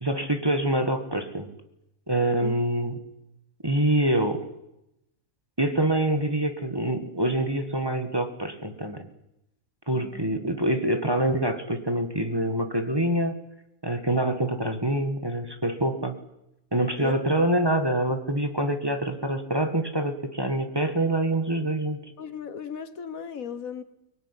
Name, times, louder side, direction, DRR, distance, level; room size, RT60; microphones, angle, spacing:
voice 1, 0.0-1.5 2.1-3.0 3.6-4.4 5.6-9.1 9.9-13.3 13.8-16.2 16.7-22.1, right 1 dB, 15° right, 6 dB, 1.8 m, -25 dB
voice 2, 9.9-10.3 17.0-17.2 22.2-23.8, left 6 dB, 70° left, 12 dB, 1.7 m, -37 dB
24.0 x 19.0 x 10.0 m, 0.88 s
omnidirectional pair, 1.5 m